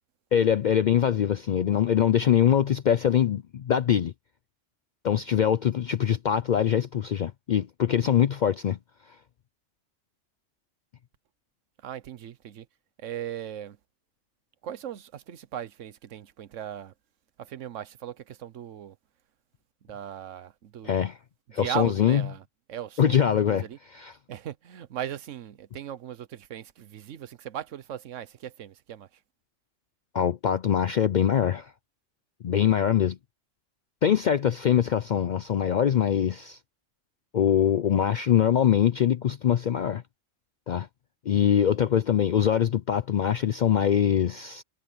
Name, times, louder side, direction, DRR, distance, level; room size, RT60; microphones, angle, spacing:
voice 1, 0.3-4.1 5.0-8.8 20.8-21.2 21.5-22.2 23.0-23.7 23.9-24.1 30.1-31.7 32.4-33.2 34.0-36.6 37.3-40.0 40.7-40.9 41.3-44.6, left 9 dB, 60° left, 0.4 m, -23 dB
voice 2, 11.8-12.6 13.0-13.8 14.6-16.9 17.4-18.9 19.8-20.9 21.5-22.4 22.7-23.8 24.3-29.1, right 10 dB, 80° right, 1.2 m, -38 dB
omnidirectional pair, 1.3 m